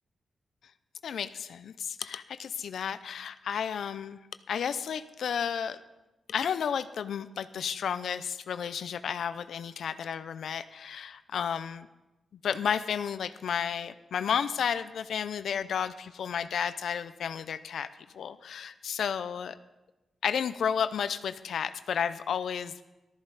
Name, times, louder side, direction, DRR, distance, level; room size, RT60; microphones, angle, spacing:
voice 1, 1.0-4.2 4.5-5.8 6.3-11.9 12.4-17.9 18.1-19.6 20.2-22.7, left 7 dB, 75° left, 12 dB, 0.5 m, -32 dB
15.0 x 13.0 x 4.1 m, 1.0 s
wide cardioid pair, 155°, 0 cm